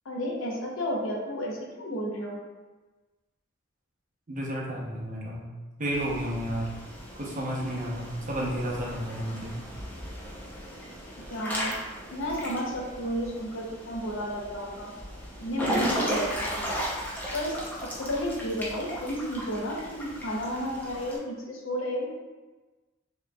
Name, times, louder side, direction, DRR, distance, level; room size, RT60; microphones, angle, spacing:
voice 1, 0.1-2.4 11.3-11.7 12.1-14.9 15.4-16.7 17.3-17.6 17.9-22.1, equal, 85° left, -1 dB, 0.7 m, -32 dB
voice 2, 4.3-5.4 5.8-6.7 7.2-9.5, equal, 40° right, -3 dB, 0.8 m, -31 dB
Water / Splash splatter / Drip, 5.9-21.2, equal, 10° left, 0.6 m, -36 dB
4.6 x 3.0 x 2.3 m, 1.2 s
head